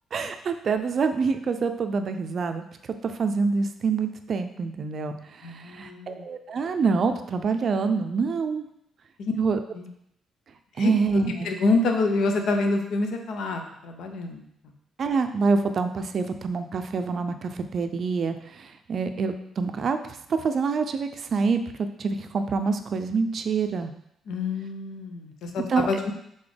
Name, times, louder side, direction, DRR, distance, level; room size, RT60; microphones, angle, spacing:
voice 1, 0.1-2.6 3.0-5.1 5.4-8.6 9.4-9.6 10.8-11.5 15.0-20.0 20.4-23.9 25.7-26.1, right 4 dB, 50° right, 8 dB, 0.4 m, -26 dB
voice 2, 5.4-6.3 9.2-9.3 9.7-9.9 10.8-14.7 24.3-26.1, left 3 dB, 75° left, 4 dB, 0.6 m, -27 dB
4.0 x 3.7 x 3.3 m, 0.76 s
cardioid pair, 90°, 0 cm